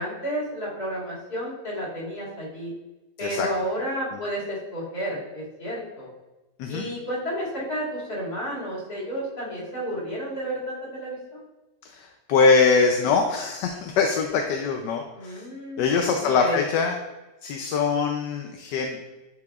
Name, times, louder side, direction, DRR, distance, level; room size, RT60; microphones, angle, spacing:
voice 1, 0.0-2.7 3.2-6.1 6.7-11.4 15.1-15.9 16.4-16.6, equal, 60° left, -7 dB, 2.9 m, -31 dB
voice 2, 11.8-15.4 15.8-17.0 17.4-19.0, left 4 dB, 85° left, 3 dB, 1.3 m, -23 dB
10.5 x 4.8 x 2.4 m, 1.1 s
omnidirectional pair, 1.8 m